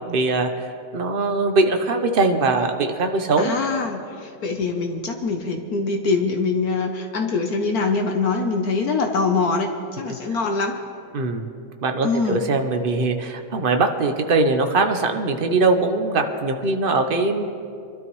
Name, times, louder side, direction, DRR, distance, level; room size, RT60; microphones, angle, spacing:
voice 1, 0.1-0.7 0.9-3.5 10.1-10.2 11.1-17.5, right 3 dB, 60° right, 5 dB, 0.5 m, -21 dB
voice 2, 3.4-9.7 10.0-10.8 12.0-12.4, left 4 dB, 60° left, 4 dB, 1.2 m, -23 dB
24.0 x 12.5 x 3.1 m, 2.5 s
omnidirectional pair, 2.0 m